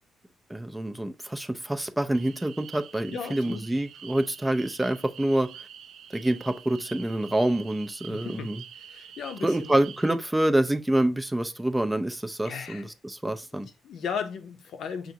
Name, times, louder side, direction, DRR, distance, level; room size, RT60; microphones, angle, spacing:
voice 1, 0.5-5.5 6.1-8.6 9.4-13.7, right 1 dB, 10° right, 0.4 m, -27 dB
sound 1, 2.1-10.2, right 9 dB, 75° right, 0.4 m, -46 dB
voice 2, 3.1-3.6 8.1-9.7 12.4-12.8 13.5-15.1, left 6 dB, 70° left, 0.7 m, -36 dB
5.7 x 2.5 x 2.8 m
cardioid pair, 90°, 0 cm